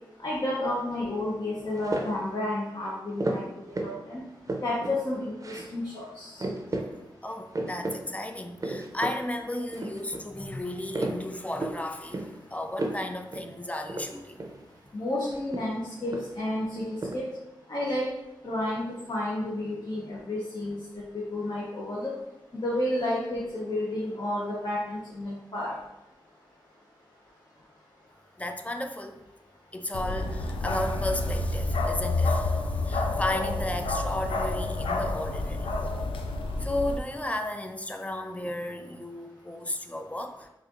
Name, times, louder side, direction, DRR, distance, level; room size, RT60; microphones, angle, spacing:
voice 1, 0.2-3.4 3.8-4.2 4.6-6.4 14.9-16.9 17.1-17.2 17.7-18.1 18.4-20.8 21.1-22.1 22.5-25.7, left 1 dB, 50° left, -5 dB, 0.8 m, -31 dB
sound 1, 1.7-2.3 3.2-4.0 4.3-5.0 5.4-5.7 6.0-6.1 6.4-6.9 7.3-8.0 8.3-9.2 9.5-10.2 10.7-11.8 12.1-12.4 12.7-13.1 13.3-13.5 13.8-14.6 15.3-16.5 16.7-17.2, right 2 dB, 40° right, 0.6 m, -33 dB
voice 2, 7.2-14.5 28.4-29.2 29.7-35.7 36.6-40.5, left 1 dB, 15° left, 5 dB, 0.4 m, -34 dB
Bark, 29.9-37.0, left 2 dB, 85° left, 0.3 m, -29 dB
4.2 x 2.4 x 2.5 m, 0.93 s
cardioid pair, 40°, 9 cm